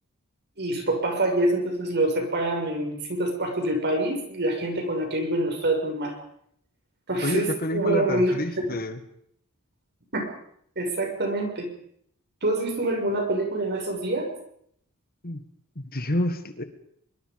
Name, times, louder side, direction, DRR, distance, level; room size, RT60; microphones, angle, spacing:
voice 1, 0.6-6.2 7.1-8.4 8.7-8.8 10.1-10.3 10.8-11.7 12.4-14.3, right 1 dB, 50° right, 3 dB, 6.2 m, -26 dB
voice 2, 7.2-9.0 15.2-15.4 15.8-16.6, left 1 dB, 45° left, 9 dB, 1.8 m, -28 dB
24.0 x 23.5 x 5.3 m, 0.69 s
head